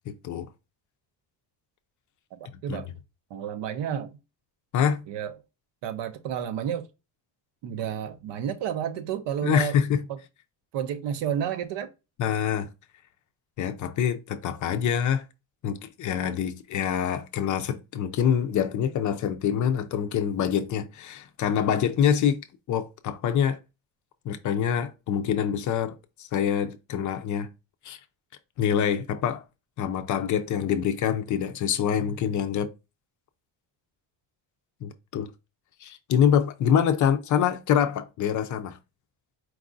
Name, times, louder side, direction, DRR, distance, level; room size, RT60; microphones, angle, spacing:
voice 1, 0.1-0.5 2.7-2.9 4.7-5.0 9.4-10.0 12.2-12.7 13.6-15.2 15.6-23.6 24.2-27.5 27.8-28.0 28.6-29.4 29.8-32.7 34.8-35.3 35.8-38.8, left 8 dB, 45° left, 0.4 m, -25 dB
voice 2, 3.3-4.2 5.1-5.3 5.8-6.9 7.6-9.8 10.1-10.2 10.7-11.9 28.7-28.9, right 9 dB, 80° right, 0.8 m, -31 dB
4.7 x 2.4 x 3.8 m
cardioid pair, 180°, 42 cm